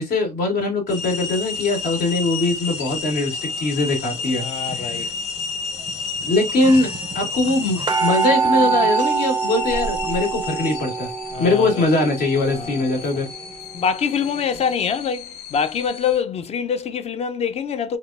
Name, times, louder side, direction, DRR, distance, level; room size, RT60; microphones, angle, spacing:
voice 1, 0.0-5.1 6.2-6.9 7.1-11.1 11.4-13.3, left 2 dB, 65° left, 1.6 m, -21 dB
sound 1, 0.9-16.2, left 5 dB, 85° left, 0.6 m, -31 dB
voice 2, 4.4-5.1 11.3-11.9 12.5-13.2 13.7-18.0, left 7 dB, 40° left, 0.5 m, -25 dB
sound 2, 4.7-5.0 5.9-6.0 6.2-6.3 6.5-14.1 14.6-14.7, right 5 dB, 25° right, 0.5 m, -25 dB
3.5 x 2.1 x 2.4 m
cardioid pair, 110°, 17 cm